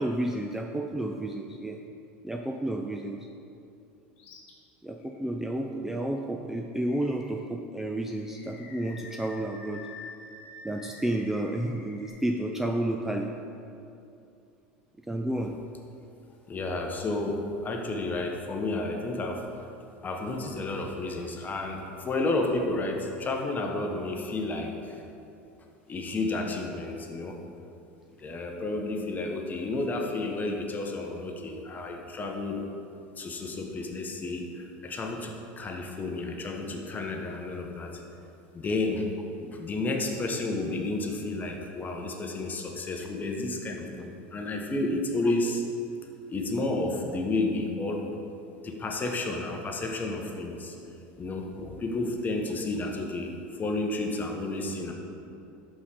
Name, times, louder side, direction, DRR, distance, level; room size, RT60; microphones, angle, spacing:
voice 1, 0.0-1.8 2.2-3.2 4.8-9.8 10.6-13.3 15.1-15.6, right 1 dB, 5° right, 2 dB, 0.3 m, -31 dB
Animal, 4.2-4.5 5.0-5.1 6.7-7.5 8.1-12.1, left 3 dB, 70° left, 1.2 m, -48 dB
voice 2, 16.5-19.4 20.0-25.0 25.9-27.4 28.2-32.6 33.2-38.0 38.5-39.1 39.5-45.6 46.3-48.1 48.6-50.8 51.2-53.3 53.6-54.9, left 2 dB, 25° left, 2 dB, 0.8 m, -31 dB
5.5 x 4.2 x 4.9 m, 2.7 s
hypercardioid pair, 95°, 7 cm